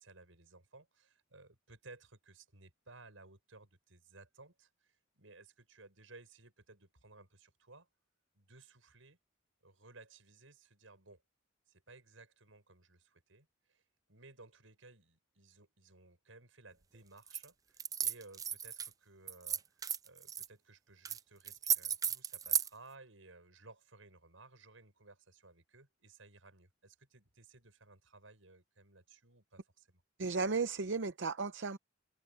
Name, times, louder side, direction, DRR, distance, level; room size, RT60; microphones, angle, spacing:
voice 1, 0.0-7.9 8.3-9.2 9.6-11.2 11.7-13.8 14.1-30.0, right 3 dB, 80° right, 6.3 m, -59 dB
sound 1, 17.3-17.5 17.8-18.9 19.3-20.5 21.0-21.2 21.4-22.7, right 8 dB, 20° right, 0.3 m, -34 dB
voice 2, 30.2-31.8, right 4 dB, 65° right, 0.7 m, -34 dB
open air
head